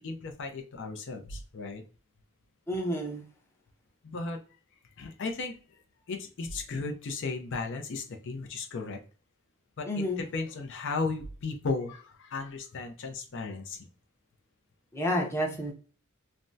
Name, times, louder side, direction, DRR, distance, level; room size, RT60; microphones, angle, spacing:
voice 1, 0.0-1.8 4.0-4.4 5.0-5.5 6.1-9.0 9.8-13.8, left 3 dB, 60° left, 4 dB, 0.5 m, -35 dB
voice 2, 2.7-3.2 9.9-10.2 14.9-15.7, equal, 10° left, 0 dB, 0.6 m, -30 dB
3.3 x 2.1 x 2.6 m, 0.37 s
head